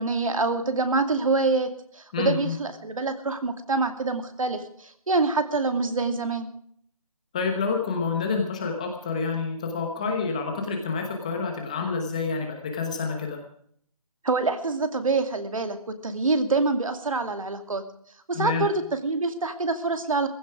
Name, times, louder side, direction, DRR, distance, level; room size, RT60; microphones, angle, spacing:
voice 1, 0.0-6.5 14.2-17.8 18.3-20.3, right 3 dB, 60° right, 9 dB, 2.5 m, -26 dB
voice 2, 2.1-2.6 7.3-13.4 18.3-18.7, left 4 dB, 10° left, 3 dB, 1.1 m, -28 dB
16.5 x 16.0 x 4.8 m, 0.64 s
hypercardioid pair, 175°, 19 cm